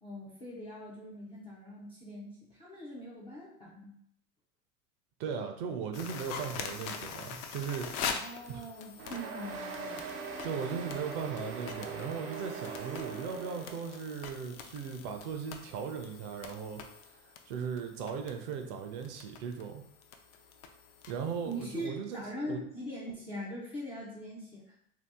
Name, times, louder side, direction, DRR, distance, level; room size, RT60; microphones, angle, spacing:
voice 1, 0.0-4.0 8.1-10.1 21.4-24.7, equal, 15° left, -8 dB, 0.3 m, -42 dB
voice 2, 5.2-7.9 8.5-8.6 10.4-16.8 17.1-19.8 21.1-22.2 22.5-22.6, right 6 dB, 45° right, 5 dB, 0.5 m, -38 dB
sound 1, 5.9-21.9, left 6 dB, 60° left, 0.6 m, -44 dB
sound 2, 9.0-14.1, right 4 dB, 85° right, 0.8 m, -41 dB
2.8 x 2.3 x 3.4 m, 0.70 s
hypercardioid pair, 105°, 48 cm